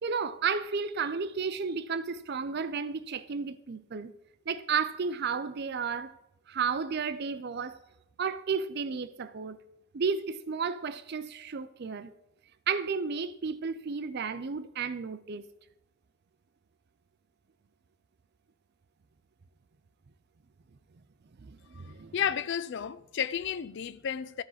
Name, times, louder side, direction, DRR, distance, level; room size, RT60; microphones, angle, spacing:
voice 1, 0.0-4.1 4.5-6.1 6.5-7.8 8.2-9.6 9.9-12.1 12.7-15.5 21.4-22.1, right 5 dB, 50° right, 0.5 m, -32 dB
voice 2, 22.1-24.4, left 8 dB, 55° left, 0.4 m, -32 dB
13.5 x 5.2 x 4.0 m
head